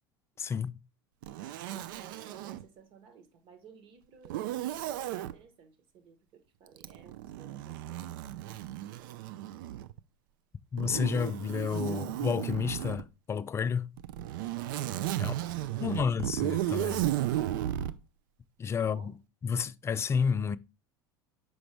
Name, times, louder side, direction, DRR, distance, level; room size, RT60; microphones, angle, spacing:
voice 1, 0.4-0.8 10.7-13.9 15.2-15.3 15.8-17.0 18.6-19.1 19.4-20.6, left 6 dB, 25° left, 0.3 m, -30 dB
Zipper (clothing), 1.2-2.6 4.2-5.3 6.8-10.0 10.8-13.0 14.0-18.0, right 13 dB, 65° right, 0.4 m, -34 dB
voice 2, 1.7-8.2 8.8-9.2 15.2-16.1 18.8-19.1, right 6 dB, 50° right, 1.3 m, -56 dB
6.2 x 4.9 x 3.3 m
hypercardioid pair, 80°, 12 cm